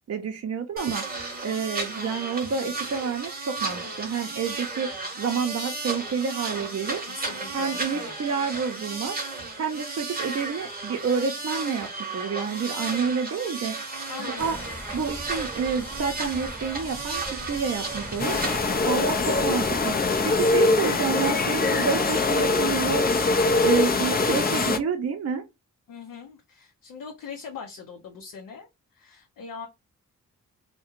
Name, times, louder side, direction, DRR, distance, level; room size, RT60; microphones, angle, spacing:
voice 1, 0.1-1.0 1.4-4.9 5.2-7.0 7.5-9.2 9.6-13.8 14.3-14.6 14.9-18.4 18.9-23.4 23.6-25.4, right 6 dB, 50° right, 0.6 m, -29 dB
sound 1, 0.8-18.6, right 3 dB, 25° right, 0.8 m, -34 dB
voice 2, 7.0-8.4 14.1-14.9 25.9-29.7, left 6 dB, 75° left, 0.6 m, -41 dB
sound 2, 14.4-20.5, equal, 5° left, 0.9 m, -41 dB
sound 3, 18.2-24.8, left 3 dB, 30° left, 0.4 m, -23 dB
2.3 x 2.1 x 3.0 m
supercardioid pair, 40°, 33 cm